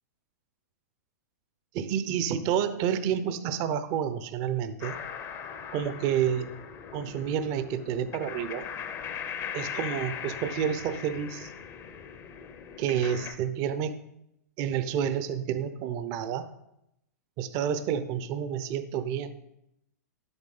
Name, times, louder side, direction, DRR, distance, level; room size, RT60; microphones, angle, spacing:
voice 1, 1.7-5.0 5.7-6.5 6.9-8.7 9.5-11.5 12.8-13.9 14.6-16.5 17.4-19.4, right 8 dB, 40° right, 11 dB, 0.7 m, -29 dB
sound 1, 4.8-13.3, left 7 dB, 30° left, 0.8 m, -39 dB
10.5 x 7.9 x 3.8 m, 0.81 s
hypercardioid pair, 115°, 9 cm